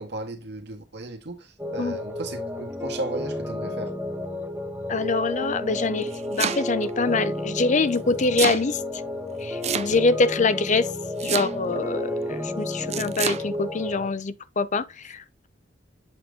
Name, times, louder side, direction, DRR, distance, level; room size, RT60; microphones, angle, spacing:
voice 1, 0.0-3.9, right 2 dB, 65° right, 1.7 m, -35 dB
sound 1, 1.6-14.1, left 1 dB, 10° right, 1.0 m, -32 dB
voice 2, 4.9-8.8 9.4-10.9 11.2-15.5, left 3 dB, 40° left, 0.6 m, -25 dB
Domestic sounds home sounds, 5.9-6.9 7.9-8.6 9.6-10.2 11.2-11.8 12.9-13.4, right 8 dB, 35° right, 0.4 m, -28 dB
8.1 x 4.0 x 3.7 m
head